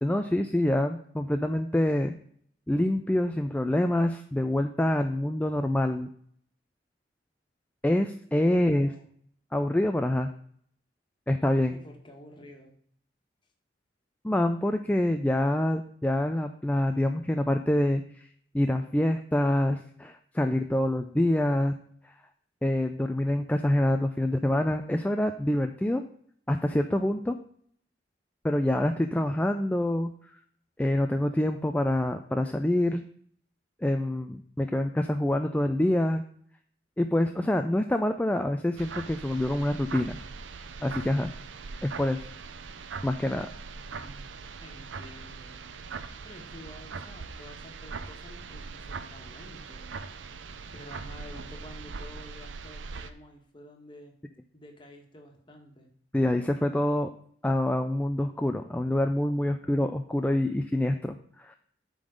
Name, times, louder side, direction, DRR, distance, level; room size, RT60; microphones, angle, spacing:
voice 1, 0.0-2.1 2.7-6.1 7.8-8.9 9.5-10.3 11.3-11.8 14.2-18.3 18.5-21.7 22.6-26.0 26.5-27.4 28.4-30.1 30.8-33.0 33.8-36.2 37.0-40.2 40.8-41.3 41.8-42.2 43.0-43.5 56.1-57.1 57.4-61.6, left 1 dB, 10° left, 6 dB, 0.4 m, -26 dB
voice 2, 8.4-9.1 11.6-12.7 43.9-44.3 44.6-45.6 46.2-49.9 50.7-54.1 54.5-55.9, left 1 dB, 25° left, 2 dB, 1.5 m, -49 dB
sound 1, 38.8-53.1, right 4 dB, 90° right, 0.6 m, -41 dB
8.7 x 3.9 x 6.3 m, 0.62 s
head